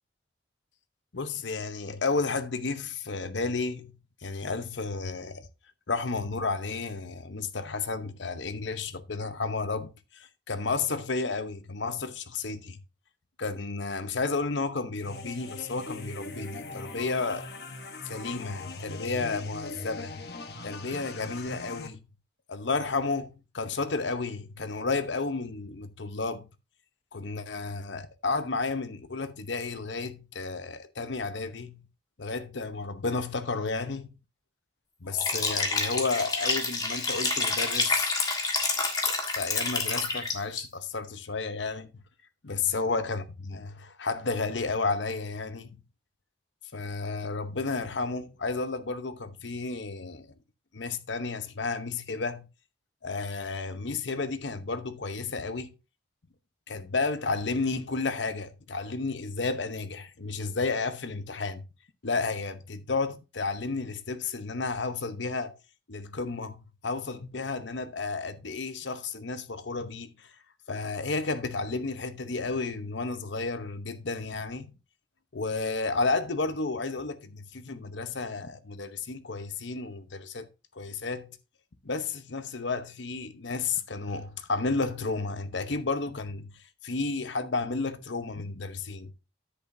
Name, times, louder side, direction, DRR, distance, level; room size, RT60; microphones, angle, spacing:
voice 1, 1.1-5.5 5.9-12.8 13.4-17.5 18.0-20.1 20.6-22.0 22.5-26.5 27.1-31.9 32.2-34.1 35.0-38.1 39.1-41.9 42.4-45.8 46.7-50.3 50.7-52.5 53.0-55.7 56.7-61.6 62.0-65.6 65.9-70.3 70.7-74.7 75.3-80.5 80.8-81.4 81.8-86.5 86.8-89.1, left 3 dB, 75° left, 0.9 m, -32 dB
sound 1, 15.0-21.9, left 2 dB, 55° left, 1.2 m, -40 dB
Liquid, 35.1-40.6, left 3 dB, 20° left, 1.6 m, -28 dB
10.0 x 8.2 x 2.7 m
head